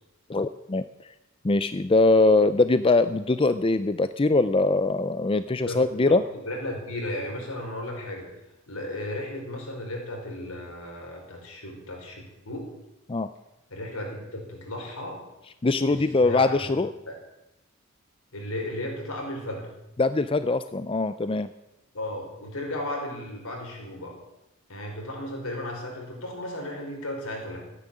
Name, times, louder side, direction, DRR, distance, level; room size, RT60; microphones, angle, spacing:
voice 1, 0.3-0.8 1.4-6.2 13.1-13.3 15.6-16.9 20.0-21.5, left 3 dB, 25° left, 12 dB, 0.5 m, -22 dB
voice 2, 5.7-8.3 8.7-12.7 13.7-15.2 15.9-16.7 17.1-17.2 18.3-19.7 21.9-24.2 24.7-27.6, left 1 dB, 75° left, 0 dB, 5.2 m, -35 dB
14.5 x 10.0 x 8.6 m, 0.93 s
head